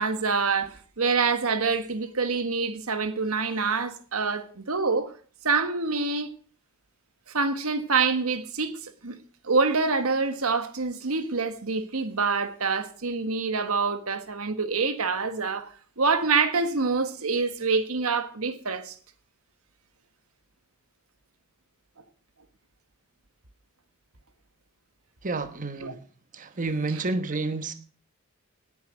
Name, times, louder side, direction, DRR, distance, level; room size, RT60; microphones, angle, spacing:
voice 1, 0.0-5.1 5.4-6.3 7.3-9.2 9.4-18.9 25.8-25.9 26.9-27.0, right 4 dB, 85° right, 1.5 m, -26 dB
voice 2, 25.2-26.0 26.3-27.7, right 3 dB, 40° right, 1.2 m, -29 dB
18.5 x 8.6 x 6.3 m
head